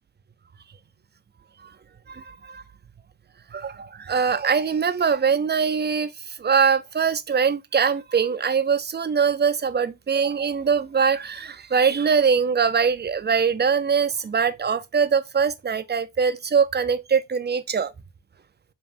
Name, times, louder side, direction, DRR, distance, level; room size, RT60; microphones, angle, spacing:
voice 1, 2.1-2.6 3.5-6.1 6.4-17.9, right 6 dB, 25° right, 0.4 m, -22 dB
5.0 x 2.4 x 3.3 m
hypercardioid pair, 40°, 47 cm